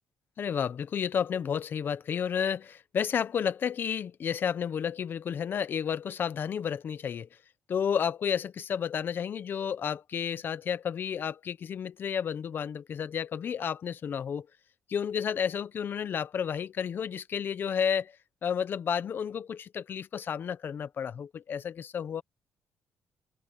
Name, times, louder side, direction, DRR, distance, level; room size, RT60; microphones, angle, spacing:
voice 1, 0.4-7.3 7.7-14.5 14.9-18.2 18.4-22.2, left 7 dB, 50° left, 0.9 m, -31 dB
cardioid pair, 115°, 4 cm